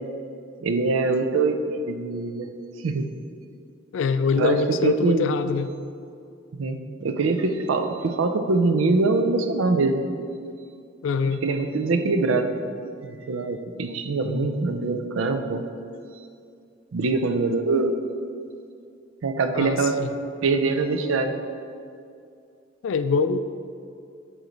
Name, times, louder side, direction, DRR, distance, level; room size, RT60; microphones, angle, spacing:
voice 1, 0.6-2.5 2.8-3.1 4.4-5.3 6.6-10.0 11.4-12.5 13.0-15.6 16.9-17.9 19.2-20.0 20.4-21.3, right 3 dB, 80° right, 7 dB, 0.4 m, -23 dB
voice 2, 3.9-5.7 11.0-11.4 14.2-14.5 19.5-20.1 22.8-23.4, left 5 dB, 70° left, 11 dB, 0.3 m, -24 dB
7.8 x 3.2 x 3.9 m, 2.4 s
head